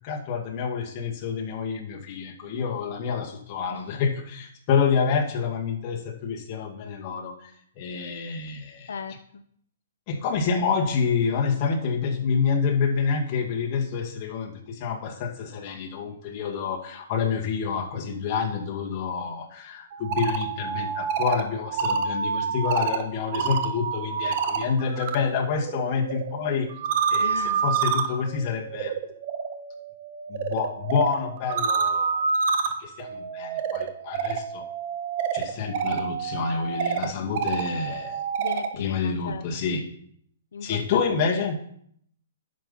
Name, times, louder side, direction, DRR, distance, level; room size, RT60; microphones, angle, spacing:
voice 1, 0.0-8.9 10.1-26.7 27.1-28.9 30.3-32.3 32.8-34.7 35.3-38.2 38.8-39.8 40.6-41.6, left 5 dB, 35° left, -1 dB, 2.2 m, -28 dB
sound 1, 19.9-25.2 25.5-38.8, right 6 dB, 45° right, 1.1 m, -28 dB
voice 2, 27.2-27.6 38.4-39.4 40.5-41.0 41.3-41.4, left 5 dB, 85° left, 9 dB, 0.6 m, -36 dB
10.5 x 6.9 x 5.7 m, 0.67 s
hypercardioid pair, 150°, 0 cm